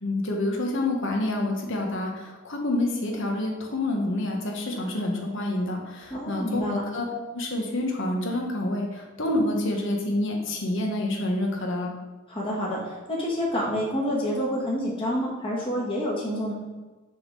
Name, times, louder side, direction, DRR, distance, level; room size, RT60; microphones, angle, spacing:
voice 1, 0.0-6.6 6.9-7.0 7.3-11.9, left 1 dB, 60° left, 1 dB, 1.2 m, -28 dB
voice 2, 6.1-6.8 12.3-16.5, equal, 25° left, -5 dB, 1.4 m, -28 dB
6.7 x 3.7 x 5.4 m, 1.3 s
head